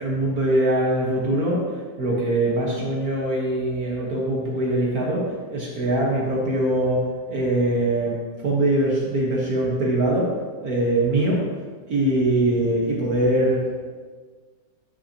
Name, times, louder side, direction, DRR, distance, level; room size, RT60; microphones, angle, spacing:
voice 1, 0.0-1.6 2.0-10.3 10.6-11.4 11.9-13.9, right 1 dB, 60° right, -3 dB, 0.9 m, -22 dB
14.0 x 5.8 x 2.9 m, 1.5 s
omnidirectional pair, 3.7 m